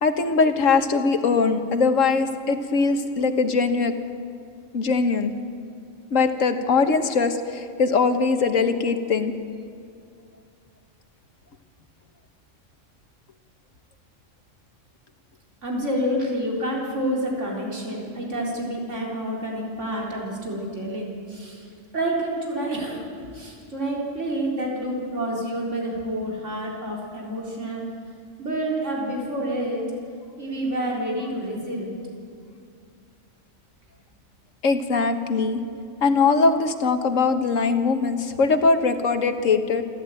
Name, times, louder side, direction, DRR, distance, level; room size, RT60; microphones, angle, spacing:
voice 1, 0.0-3.9 4.7-5.3 6.1-9.3 34.6-35.6 36.0-39.8, left 4 dB, 80° left, 8 dB, 1.7 m, -21 dB
voice 2, 15.6-21.7 21.9-27.8 28.4-29.8 30.4-32.0, right 1 dB, 70° right, -2 dB, 4.3 m, -28 dB
27.5 x 13.5 x 9.1 m, 2.3 s
omnidirectional pair, 1.3 m